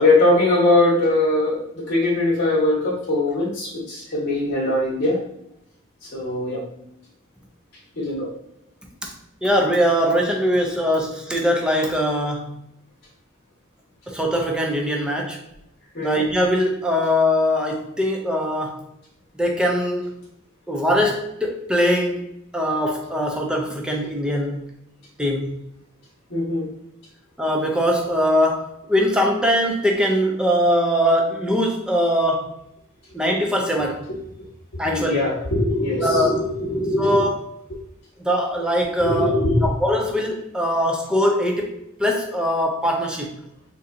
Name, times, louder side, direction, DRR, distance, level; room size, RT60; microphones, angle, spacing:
voice 1, 0.0-5.2 6.1-6.6 7.9-8.3 15.9-16.2 26.3-26.7 34.8-37.3 39.0-39.7, left 2 dB, 55° left, -7 dB, 1.0 m, -21 dB
voice 2, 9.4-12.6 14.1-15.4 16.0-18.8 19.3-20.2 20.7-24.6 25.2-25.6 27.4-32.6 33.1-34.1 34.8-35.3 36.0-36.4 37.0-37.4 38.2-43.4, equal, 5° right, 0 dB, 0.5 m, -22 dB
3.7 x 2.7 x 2.5 m, 0.78 s
head